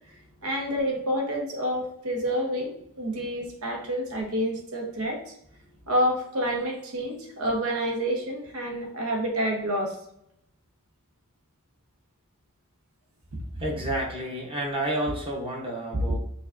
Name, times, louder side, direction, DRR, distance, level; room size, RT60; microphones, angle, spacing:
voice 1, 0.4-5.3 5.9-10.0, equal, 80° right, 1 dB, 1.0 m, -28 dB
voice 2, 13.6-16.2, right 1 dB, 25° right, -1 dB, 0.8 m, -30 dB
5.1 x 2.3 x 2.5 m, 0.74 s
head